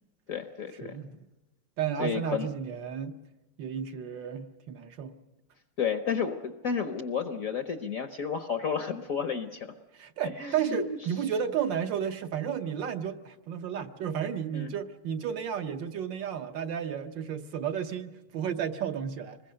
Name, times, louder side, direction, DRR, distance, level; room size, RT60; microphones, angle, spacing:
voice 1, 0.3-1.0 2.0-2.5 5.8-9.7 10.4-11.0 14.5-14.7, left 6 dB, 55° left, 8 dB, 1.0 m, -31 dB
voice 2, 1.8-3.2 3.6-5.2 9.9-19.4, right 8 dB, 65° right, 6 dB, 1.5 m, -32 dB
25.5 x 21.0 x 6.4 m, 1.0 s
omnidirectional pair, 2.3 m